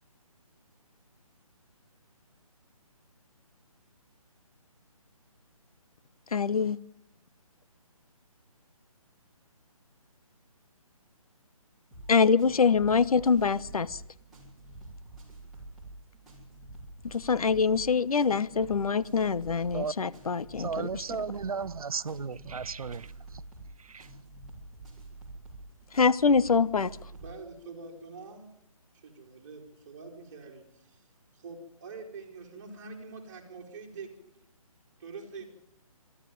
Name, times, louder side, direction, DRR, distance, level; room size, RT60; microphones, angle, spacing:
voice 1, 6.3-6.8 12.1-14.0 17.0-21.0 25.9-26.9, left 5 dB, 75° left, 0.9 m, -24 dB
sound 1, 11.9-27.4, right 2 dB, ahead, 5.0 m, -47 dB
voice 2, 20.6-23.1 23.8-24.1, right 5 dB, 75° right, 0.8 m, -34 dB
voice 3, 27.1-28.5 28.9-31.0 31.3-34.3 35.0-35.4, right 4 dB, 30° right, 3.8 m, -45 dB
24.0 x 12.5 x 9.3 m
hypercardioid pair, 160°, 19 cm